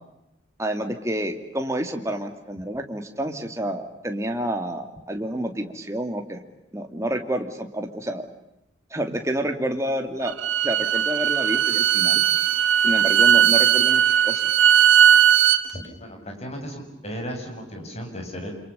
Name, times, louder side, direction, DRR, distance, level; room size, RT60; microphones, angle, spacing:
voice 1, 0.6-6.4 6.7-8.3 8.9-10.3 10.6-12.2 12.8-14.5, right 1 dB, 15° right, 4 dB, 2.7 m, -29 dB
Bowed string instrument, 10.3-15.6, right 9 dB, 80° right, 2.0 m, -18 dB
voice 2, 15.7-18.5, equal, 35° left, 3 dB, 7.2 m, -35 dB
28.5 x 27.5 x 7.0 m, 0.90 s
head